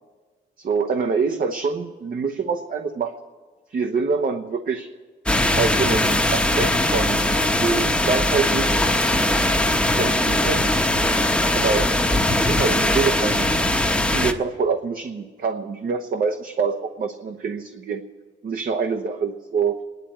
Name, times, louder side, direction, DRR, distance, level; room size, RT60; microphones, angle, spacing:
voice 1, 0.6-3.1 3.7-4.9 5.6-7.2 7.6-8.8 9.9-10.7 11.5-11.9 12.3-13.5 14.1-18.0 18.4-19.8, right 5 dB, 45° right, 5 dB, 1.1 m, -25 dB
sound 1, 5.3-14.3, left 1 dB, 5° left, 1.1 m, -20 dB
30.0 x 11.0 x 4.4 m, 1.4 s
cardioid pair, 90°, 20 cm